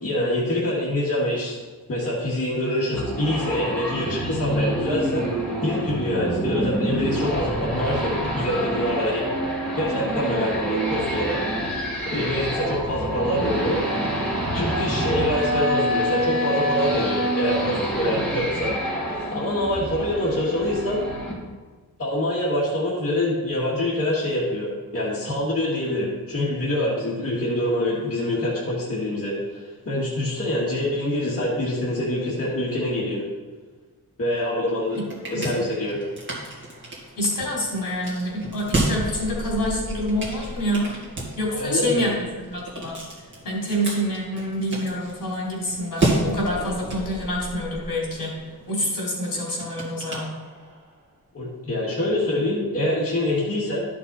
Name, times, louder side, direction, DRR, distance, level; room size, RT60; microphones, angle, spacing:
voice 1, 0.0-1.6 1.9-5.3 5.6-9.2 9.8-11.4 11.6-13.8 14.5-18.8 19.0-21.1 22.0-29.6 29.9-33.3 34.2-35.0 35.3-36.0 41.5-42.0 51.3-53.8, left 1 dB, 40° left, -8 dB, 2.0 m, -25 dB
sound 1, 2.9-21.3, right 1 dB, 5° left, 2.2 m, -27 dB
sound 2, 34.7-50.9, right 2 dB, 30° right, 2.3 m, -32 dB
voice 2, 37.2-40.9 41.4-43.0 43.4-48.4 48.7-50.3, equal, 65° left, -4 dB, 3.1 m, -27 dB
12.5 x 6.0 x 4.1 m, 1.4 s
wide cardioid pair, 155°, 36 cm